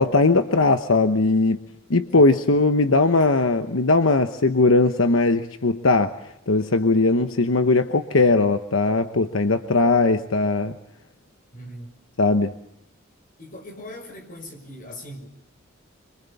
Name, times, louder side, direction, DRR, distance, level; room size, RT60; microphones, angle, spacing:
voice 1, 0.0-1.6 1.9-6.1 6.5-10.8 12.2-12.5, left 3 dB, 80° left, 8 dB, 1.1 m, -19 dB
voice 2, 11.5-11.9 13.4-15.3, left 1 dB, 45° left, 4 dB, 6.0 m, -40 dB
27.0 x 24.0 x 7.1 m, 0.81 s
head